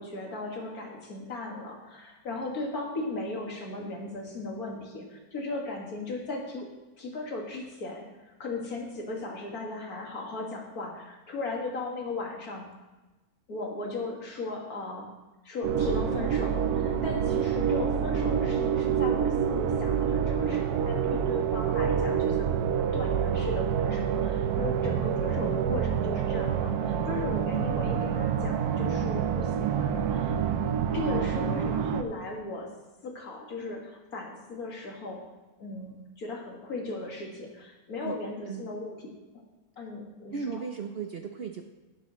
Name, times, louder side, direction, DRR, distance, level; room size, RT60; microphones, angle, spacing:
voice 1, 0.0-6.7 7.0-8.0 8.4-12.7 13.5-15.1 15.4-30.4 30.9-32.7 33.0-35.3 35.6-39.1 39.3-39.4 39.8-40.6, left 2 dB, 75° left, -1 dB, 2.3 m, -37 dB
sound 1, 15.6-32.0, right 8 dB, 85° right, 1.2 m, -27 dB
voice 2, 40.3-41.6, right 6 dB, 55° right, 5 dB, 0.7 m, -36 dB
11.5 x 9.8 x 3.0 m, 1.1 s
omnidirectional pair, 1.6 m